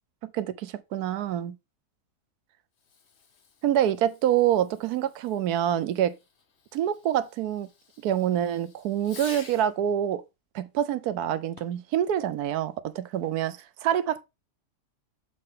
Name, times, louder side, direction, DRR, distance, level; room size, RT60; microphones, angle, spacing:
voice 1, 0.2-1.5 3.6-6.2 6.7-7.7 8.0-10.2 10.5-14.2, right 10 dB, 80° right, 1.1 m, -26 dB
Fireworks, 2.7-9.8 11.5-11.9, left 5 dB, 50° left, 1.2 m, -51 dB
7.5 x 4.1 x 3.7 m
omnidirectional pair, 1.7 m